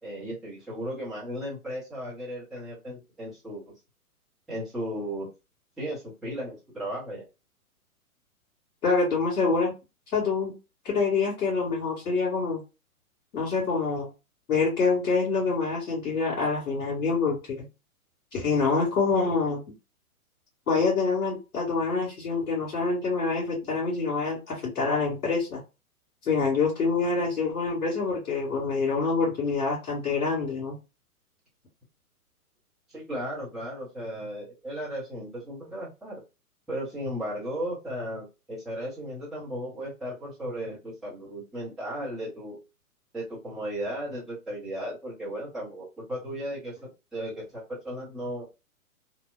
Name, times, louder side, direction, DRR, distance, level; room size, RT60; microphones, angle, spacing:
voice 1, 0.0-3.7 4.5-5.3 5.8-7.2 32.9-36.2 36.7-42.6 43.1-48.5, equal, ahead, -10 dB, 0.5 m, -35 dB
voice 2, 8.8-9.7 10.1-10.5 10.8-12.6 13.3-14.1 14.5-17.7 18.3-19.6 20.7-25.6 26.2-30.8, left 4 dB, 65° left, -6 dB, 1.5 m, -26 dB
2.7 x 2.1 x 2.2 m, 0.28 s
figure-of-eight pair, 120°, 45 cm